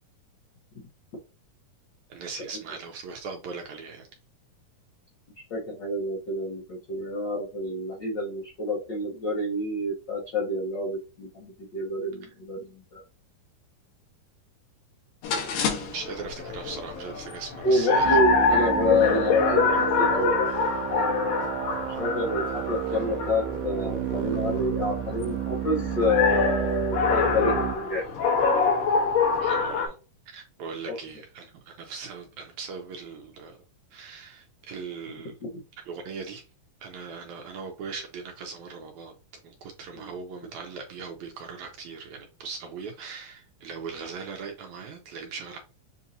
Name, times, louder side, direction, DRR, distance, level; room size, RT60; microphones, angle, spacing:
voice 1, 2.1-4.1 12.2-12.3 15.6-18.2 29.4-30.0 30.3-33.6 33.9-35.3 35.9-36.4 36.8-39.1 39.4-45.6, right 5 dB, 75° right, 1.9 m, -39 dB
voice 2, 5.4-13.0 17.6-20.6 20.9-21.5 22.0-28.0 30.9-31.0 39.9-40.1, left 2 dB, 70° left, 1.0 m, -28 dB
sound 1, 15.2-29.9, left 4 dB, 85° left, 2.8 m, -26 dB
sound 2, 18.0-27.8, right 11 dB, 90° right, 2.3 m, -31 dB
7.2 x 2.6 x 2.7 m
omnidirectional pair, 3.9 m